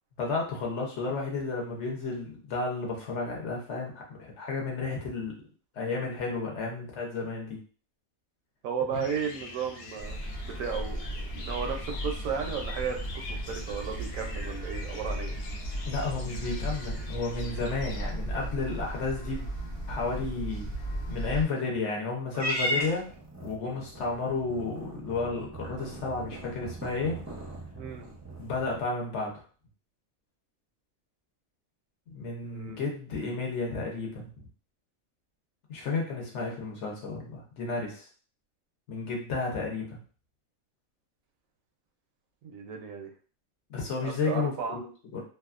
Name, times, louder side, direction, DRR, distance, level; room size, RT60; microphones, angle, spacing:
voice 1, 0.2-5.3 5.7-7.6 8.9-9.0 15.9-19.5 19.9-20.7 21.1-23.1 23.4-27.2 28.4-29.4 32.1-34.3 35.7-38.1 38.9-40.0 43.7-45.2, left 3 dB, 60° left, -1 dB, 1.0 m, -32 dB
voice 2, 8.6-10.2 10.4-13.0 13.3-15.4 27.8-28.0 32.4-32.9 42.4-43.1 44.0-44.8, right 6 dB, 80° right, 3 dB, 1.0 m, -34 dB
sound 1, 8.9-18.1, left 3 dB, 85° left, 1.1 m, -44 dB
sound 2, 10.0-21.4, right 1 dB, 40° left, 0.7 m, -36 dB
Purr / Meow, 22.3-28.8, equal, 25° right, 0.3 m, -37 dB
2.7 x 2.3 x 2.4 m, 0.40 s
omnidirectional pair, 1.4 m